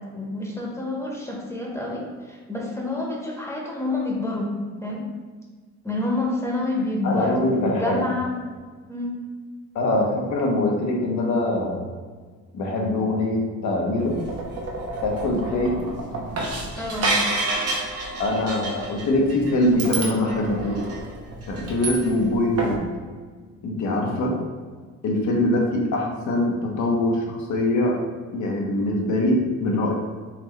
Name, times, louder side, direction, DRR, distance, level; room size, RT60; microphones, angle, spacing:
voice 1, 0.1-4.5 4.8-5.0 5.8-8.4 8.9-9.2 16.8-17.1, left 2 dB, 10° left, -3 dB, 0.9 m, -28 dB
voice 2, 7.0-8.0 9.7-11.8 12.5-14.2 15.0-15.7 18.2-20.9 21.5-22.9 23.6-24.4 25.0-28.0 28.3-29.9, left 1 dB, 70° left, 0 dB, 1.0 m, -23 dB
sound 1, 14.0-22.3 22.6-22.8, right 2 dB, 55° right, 1.0 m, -29 dB
4.1 x 3.1 x 3.2 m, 1.5 s
cardioid pair, 90°, 30 cm